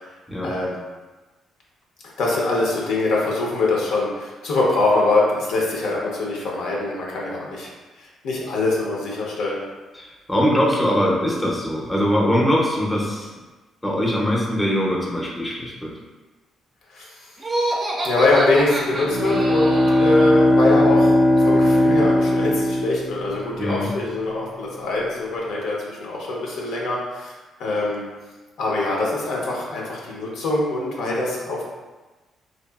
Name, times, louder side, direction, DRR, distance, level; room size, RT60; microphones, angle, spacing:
voice 1, 0.4-0.8 2.0-7.7 8.0-9.6 16.9-17.3 18.0-28.1 28.6-31.6, left 2 dB, 80° left, -3 dB, 0.6 m, -23 dB
voice 2, 9.9-13.3 13.8-15.9 23.6-23.9, equal, 10° left, -3 dB, 0.5 m, -22 dB
Laughter, 17.4-20.2, right 1 dB, 35° right, 0.5 m, -27 dB
Bowed string instrument, 18.9-23.6, left 1 dB, 85° right, 0.5 m, -18 dB
2.8 x 2.3 x 2.3 m, 1.2 s
cardioid pair, 90°, 0 cm